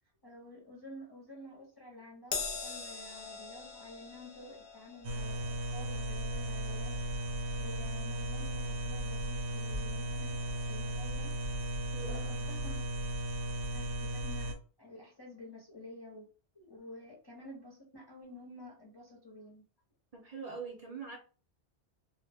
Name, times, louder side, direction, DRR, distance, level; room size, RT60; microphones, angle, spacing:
voice 1, 0.2-7.1 7.6-10.4 10.7-11.3 12.0-12.8 13.7-16.3 16.5-19.6, left 1 dB, 30° left, 0.4 m, -50 dB
Crash cymbal, 2.3-8.9 9.3-9.5 10.5-10.6, left 5 dB, 60° left, 0.7 m, -44 dB
sound 1, 5.0-14.5, right 1 dB, 75° right, 0.8 m, -36 dB
voice 2, 11.9-12.4 20.1-21.2, right 5 dB, 45° right, 0.6 m, -43 dB
2.1 x 2.1 x 3.3 m
omnidirectional pair, 1.2 m